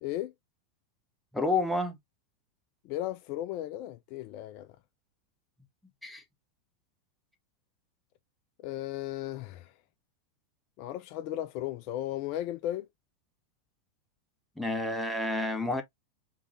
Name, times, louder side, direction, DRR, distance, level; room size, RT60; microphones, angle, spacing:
voice 1, 0.0-0.3 2.8-4.7 8.6-9.7 10.8-12.9, left 13 dB, 45° left, 0.4 m, -35 dB
voice 2, 1.3-2.0 6.0-6.2 14.6-15.8, left 2 dB, 5° left, 1.0 m, -29 dB
3.7 x 3.2 x 3.1 m
figure-of-eight pair, 90°, 0 cm